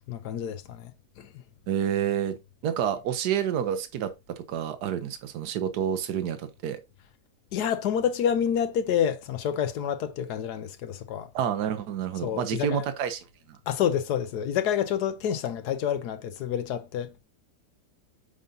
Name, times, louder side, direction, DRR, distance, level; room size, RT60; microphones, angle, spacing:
voice 1, 0.1-0.9 1.2-1.3 7.5-11.3 12.2-12.8 13.7-17.1, left 9 dB, 85° left, 1.3 m, -28 dB
voice 2, 1.7-2.4 2.6-6.8 11.3-13.2, right 9 dB, 85° right, 1.4 m, -29 dB
6.8 x 5.2 x 2.6 m
omnidirectional pair, 1.7 m